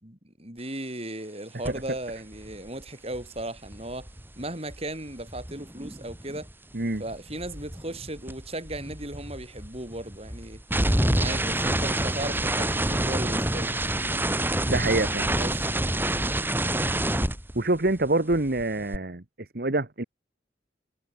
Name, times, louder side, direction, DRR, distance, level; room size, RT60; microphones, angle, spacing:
voice 1, 0.0-4.1 4.4-6.5 7.0-10.6 11.1-13.8 15.4-15.6, right 1 dB, 35° right, 7.6 m, -36 dB
sound 1, 1.6-1.9 2.1-6.5 6.8-18.1 18.3-19.0, right 1 dB, 10° right, 3.7 m, -28 dB
voice 2, 14.7-15.3 17.5-19.2 19.5-20.0, right 2 dB, 55° right, 1.5 m, -25 dB
head